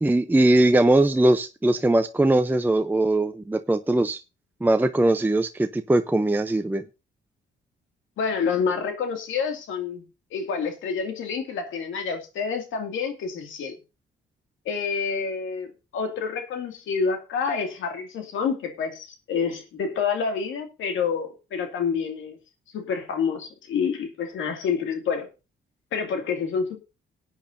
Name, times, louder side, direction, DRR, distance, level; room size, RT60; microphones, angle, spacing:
voice 1, 0.0-4.2 4.6-6.9, right 2 dB, 10° right, 0.6 m, -20 dB
voice 2, 8.2-10.0 10.3-13.8 14.7-22.4 22.7-25.3 25.9-26.8, left 6 dB, 80° left, 2.4 m, -28 dB
19.0 x 8.9 x 2.7 m
cardioid pair, 90°, 20 cm